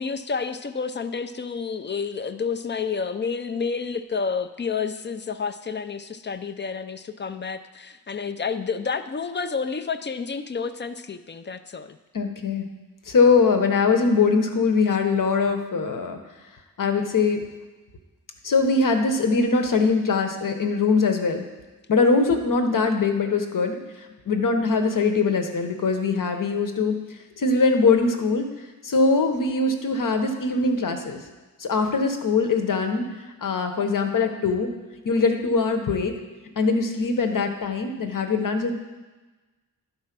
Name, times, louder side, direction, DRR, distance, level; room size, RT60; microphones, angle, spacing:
voice 1, 0.0-12.0, left 5 dB, 35° left, 10 dB, 0.4 m, -30 dB
voice 2, 12.1-12.7 13.1-16.2 16.8-17.4 18.4-21.4 21.9-23.8 24.3-27.0 27.4-28.5 28.8-31.2 31.6-34.7 35.0-36.1 36.6-38.7, left 4 dB, 65° left, 5 dB, 1.0 m, -22 dB
11.5 x 4.3 x 5.9 m, 1.2 s
wide cardioid pair, 150°, 35 cm